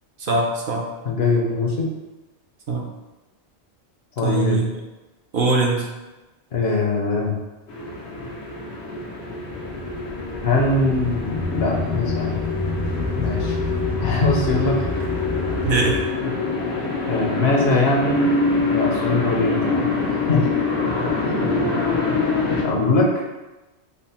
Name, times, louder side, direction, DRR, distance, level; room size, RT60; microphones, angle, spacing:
voice 1, 0.2-0.9 2.7-2.9 4.2-4.7 5.3-5.9 15.6-16.0, right 3 dB, 55° right, -1 dB, 0.8 m, -21 dB
voice 2, 1.0-1.9 4.2-4.6 6.5-7.4 10.4-12.4 13.1-13.6 13.9-14.9 16.2-16.5 17.1-18.3 18.7-20.5 21.2-21.4 22.6-23.2, left 2 dB, 65° left, -1 dB, 1.0 m, -22 dB
sound 1, 7.7-22.6, left 3 dB, 90° left, 1.1 m, -25 dB
sound 2, 9.4-16.0, left 2 dB, 75° right, 1.4 m, -28 dB
4.1 x 2.0 x 4.1 m, 1.1 s
omnidirectional pair, 1.1 m